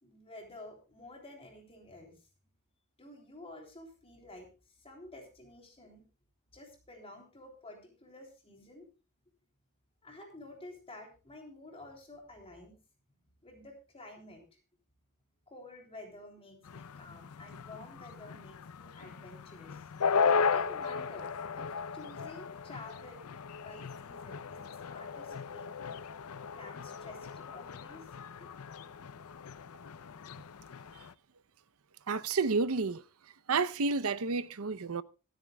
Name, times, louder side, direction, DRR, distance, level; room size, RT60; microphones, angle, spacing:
voice 1, 0.0-2.2 3.0-4.5 4.8-6.0 6.5-8.9 10.0-12.8 13.4-14.5 15.5-19.9 20.5-21.3 21.5-21.7 21.9-23.3 23.6-26.0 26.5-28.1 28.4-28.5, left 2 dB, 25° left, 3.3 m, -50 dB
sound 1, 16.6-31.1, left 5 dB, 85° left, 0.6 m, -36 dB
voice 2, 32.1-33.0 33.5-35.0, right 4 dB, 75° right, 0.7 m, -30 dB
25.0 x 9.2 x 2.3 m
head